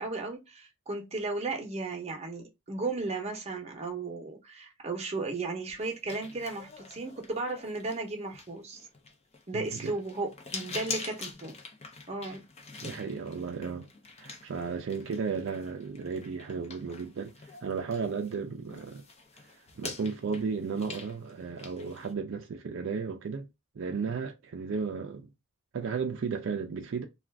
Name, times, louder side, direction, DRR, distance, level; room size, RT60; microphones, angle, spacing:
voice 1, 0.0-8.9 9.5-11.6 12.1-12.5, right 3 dB, 30° right, 0.7 m, -35 dB
sound 1, 5.8-18.4 18.7-22.1, left 4 dB, 30° left, 0.5 m, -45 dB
voice 2, 9.5-9.9 12.8-13.9 14.2-19.0 19.8-23.5 23.7-25.3 25.7-27.0, right 5 dB, 70° right, 0.4 m, -34 dB
2.4 x 2.3 x 3.2 m
head